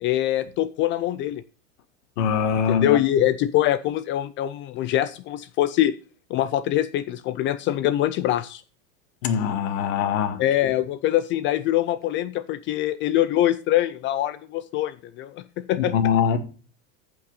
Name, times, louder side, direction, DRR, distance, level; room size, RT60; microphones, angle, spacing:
voice 1, 0.0-1.4 2.7-5.9 6.3-8.6 10.4-15.9, left 13 dB, 30° left, 0.4 m, -24 dB
voice 2, 2.2-3.0 9.2-10.7 15.8-16.4, left 7 dB, 65° left, 2.1 m, -23 dB
14.5 x 5.8 x 4.0 m
supercardioid pair, 130°, 39 cm